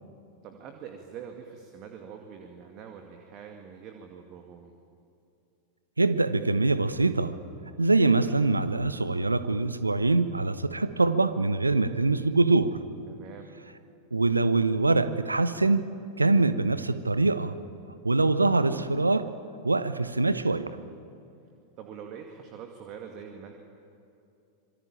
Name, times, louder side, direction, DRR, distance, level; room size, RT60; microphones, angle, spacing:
voice 1, 0.4-4.7 13.1-13.5 16.6-16.7 21.8-23.5, right 7 dB, 40° right, 4 dB, 2.3 m, -44 dB
voice 2, 6.0-7.4 7.8-12.8 14.1-15.9 16.2-17.5 18.0-19.3 19.6-20.8, right 3 dB, 80° right, 13 dB, 1.0 m, -24 dB
26.0 x 23.0 x 8.9 m, 2.7 s
figure-of-eight pair, 90°, 0 cm